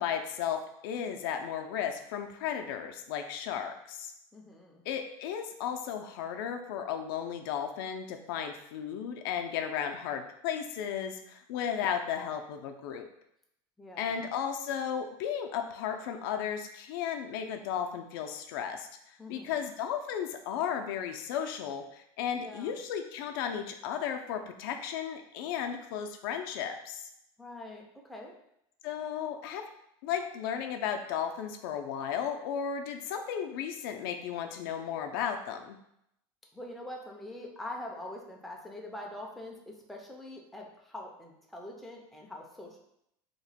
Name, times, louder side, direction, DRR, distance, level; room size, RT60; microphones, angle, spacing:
voice 1, 0.0-4.1 4.9-13.1 14.0-18.9 19.3-27.0 28.8-29.6 30.0-35.8, left 8 dB, 75° left, 5 dB, 0.4 m, -34 dB
voice 2, 4.3-4.8 13.8-14.3 19.2-19.6 22.4-22.7 27.4-28.3 36.5-42.8, left 1 dB, ahead, -1 dB, 0.4 m, -44 dB
2.9 x 2.1 x 4.0 m, 0.77 s
supercardioid pair, 155°, 12 cm